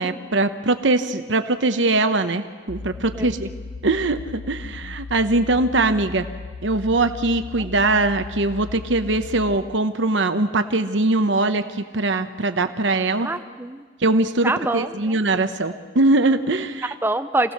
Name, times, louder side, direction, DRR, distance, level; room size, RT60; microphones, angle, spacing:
voice 1, 0.0-3.5 3.8-6.3 6.6-13.3 14.0-16.9, right 2 dB, 70° right, 8 dB, 1.0 m, -21 dB
sound 1, 2.7-9.6, left 4 dB, 45° left, 0.6 m, -37 dB
voice 2, 3.0-3.4 4.6-4.9 7.6-7.7 13.2-13.9 14.4-15.5 17.0-17.5, right 2 dB, 10° right, 11 dB, 0.6 m, -27 dB
25.5 x 17.5 x 6.6 m, 1.6 s
head